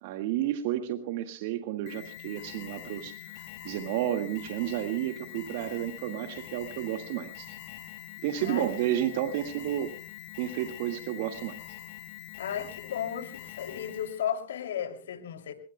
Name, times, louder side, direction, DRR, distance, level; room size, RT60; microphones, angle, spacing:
voice 1, 0.0-7.6 8.2-9.9 10.4-11.6, right 12 dB, 60° right, 1.8 m, -31 dB
Alarm, 1.9-14.3, left 13 dB, 55° left, 5.6 m, -44 dB
voice 2, 12.4-15.5, left 9 dB, 85° left, 2.8 m, -34 dB
25.5 x 21.5 x 2.2 m
hypercardioid pair, 125°, 0 cm